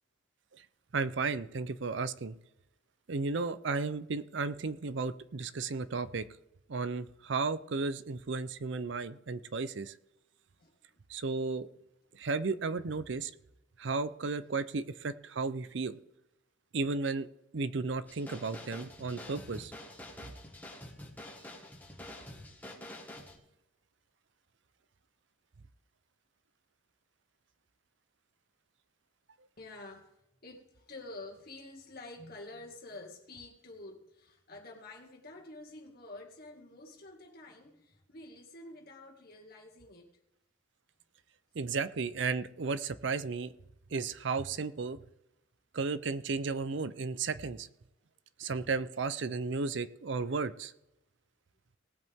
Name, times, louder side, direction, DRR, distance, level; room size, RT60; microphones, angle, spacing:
voice 1, 0.9-2.4 3.1-6.2 6.7-9.9 11.1-11.7 12.2-13.3 13.8-16.0 16.7-17.3 17.5-19.7 41.6-43.5 43.9-45.0 45.7-47.7 48.4-50.7, right 4 dB, 60° right, 0.6 m, -34 dB
voice 2, 10.6-11.0 29.6-30.1 30.4-40.1, left 2 dB, 50° left, 2.2 m, -49 dB
sound 1, 18.0-23.4, left 1 dB, 10° left, 1.8 m, -47 dB
19.0 x 8.0 x 3.6 m
head